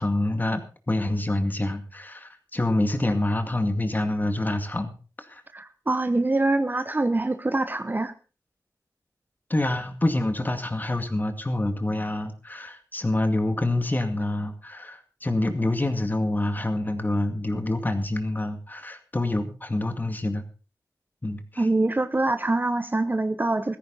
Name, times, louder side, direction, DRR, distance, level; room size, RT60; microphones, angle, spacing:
voice 1, 0.0-5.4 9.5-20.4 21.2-21.7, left 1 dB, 25° left, 7 dB, 2.2 m, -27 dB
voice 2, 5.5-8.1 21.6-23.8, right 2 dB, 25° right, 9 dB, 0.9 m, -24 dB
14.5 x 14.5 x 4.2 m, 0.36 s
wide cardioid pair, 75°, 7 cm